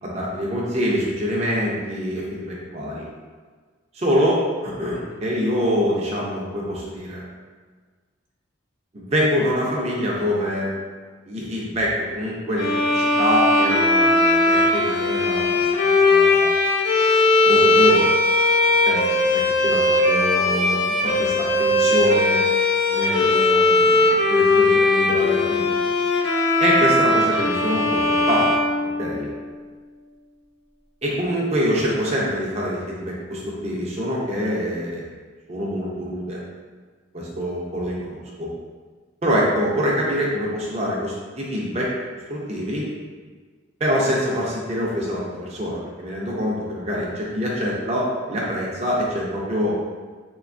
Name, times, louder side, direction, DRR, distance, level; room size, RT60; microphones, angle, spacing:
voice 1, 0.0-3.1 3.9-7.2 8.9-10.7 11.3-16.5 17.4-18.1 18.9-22.4 22.9-25.8 26.6-28.6 29.0-29.3 31.0-35.1 35.5-36.4 37.1-38.5 39.2-41.9 42.3-42.9 43.8-49.9, equal, 30° right, -4 dB, 0.5 m, -25 dB
sound 1, 12.6-29.4, left 2 dB, 55° left, 0.3 m, -19 dB
3.3 x 2.2 x 2.4 m, 1.5 s
head